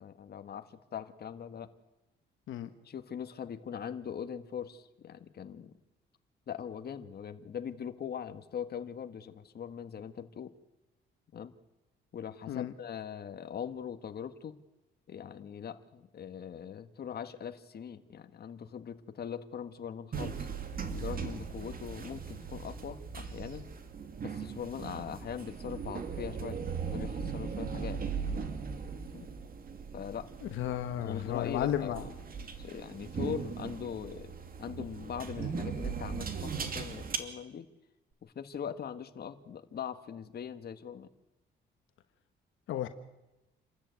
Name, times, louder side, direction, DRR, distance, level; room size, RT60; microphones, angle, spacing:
voice 1, 0.0-1.7 2.8-5.7 6.5-10.5 11.3-11.5 12.1-14.6 15.1-20.5 20.9-23.7 24.2-26.6 26.9-28.0 29.1-29.3 29.9-30.3 31.0-32.1 32.6-34.3 34.6-37.7 38.2-41.1, left 8 dB, 55° left, 9 dB, 1.6 m, -41 dB
sound 1, 20.1-37.2, right 6 dB, 45° right, 2.7 m, -39 dB
voice 2, 30.6-32.0 42.7-42.9, left 11 dB, 80° left, 9 dB, 1.4 m, -33 dB
27.5 x 13.5 x 9.5 m, 1.0 s
cardioid pair, 90°, 20 cm